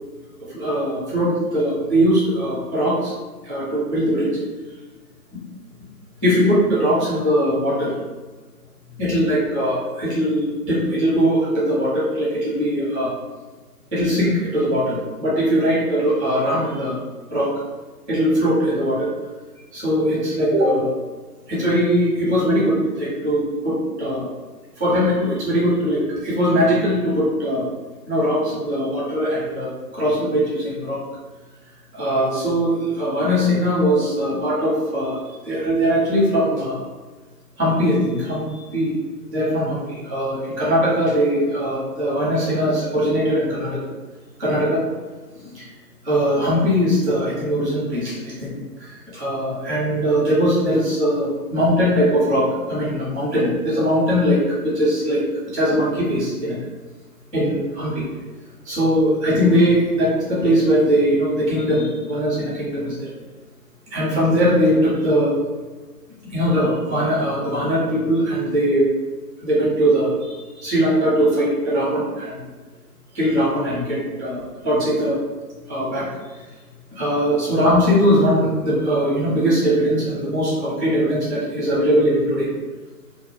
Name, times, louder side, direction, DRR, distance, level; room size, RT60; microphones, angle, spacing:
voice 1, 0.4-3.1 3.4-4.4 5.3-5.4 6.2-8.0 9.0-13.1 13.9-17.0 17.3-17.5 18.1-19.1 19.7-20.9 21.5-24.3 24.8-27.6 28.1-31.0 31.9-36.8 37.6-38.9 39.2-43.8 44.4-44.8 45.3-45.7 46.0-48.5 48.8-56.6 57.3-58.1 58.6-63.1 63.9-65.4 66.3-68.9 69.4-72.5 73.1-75.2 75.7-76.1 76.3-76.5 76.9-82.5, equal, 5° right, -9 dB, 0.5 m, -20 dB
2.4 x 2.1 x 3.1 m, 1.3 s
figure-of-eight pair, 135°, 49 cm